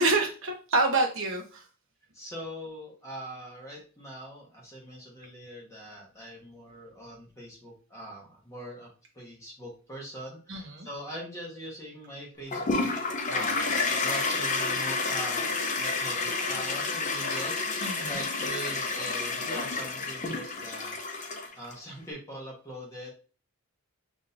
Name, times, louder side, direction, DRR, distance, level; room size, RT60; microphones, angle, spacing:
voice 1, 0.0-1.6 10.5-10.9 17.8-18.2, right 2 dB, 60° right, 2 dB, 1.0 m, -27 dB
voice 2, 2.1-8.9 9.1-12.9 13.2-21.0 21.6-23.1, right 1 dB, 15° left, -2 dB, 1.1 m, -42 dB
Toilet flush, 12.5-21.7, left 3 dB, 35° left, 0.6 m, -30 dB
6.1 x 2.7 x 2.6 m, 0.36 s
head